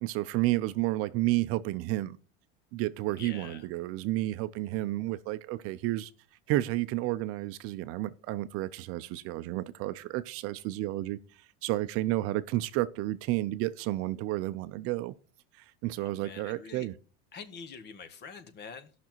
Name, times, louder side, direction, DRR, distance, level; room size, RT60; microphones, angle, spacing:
voice 1, 0.0-2.2 2.7-6.1 6.5-11.2 11.6-15.1 15.5-16.9, right 17 dB, 50° right, 0.5 m, -31 dB
voice 2, 3.2-3.7 16.0-16.9 17.3-18.9, left 5 dB, 35° left, 1.1 m, -46 dB
17.0 x 6.0 x 3.0 m
supercardioid pair, 135°, 30 cm